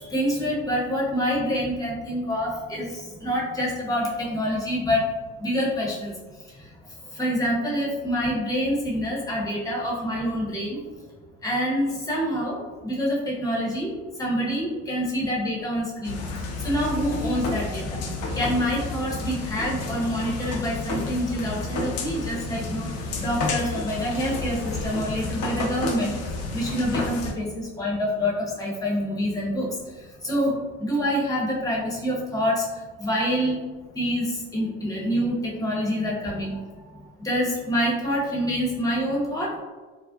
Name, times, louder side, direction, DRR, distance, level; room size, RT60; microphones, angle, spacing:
voice 1, 0.0-5.1 5.4-6.7 7.1-10.8 11.4-13.9 14.2-16.2 16.6-18.0 18.3-26.2 26.5-33.6 33.9-36.8 37.2-39.6, equal, 10° left, -4 dB, 0.8 m, -26 dB
sound 1, 16.0-27.3, left 3 dB, 40° left, 0.5 m, -31 dB
2.4 x 2.0 x 2.5 m, 1.3 s
hypercardioid pair, 70°, 38 cm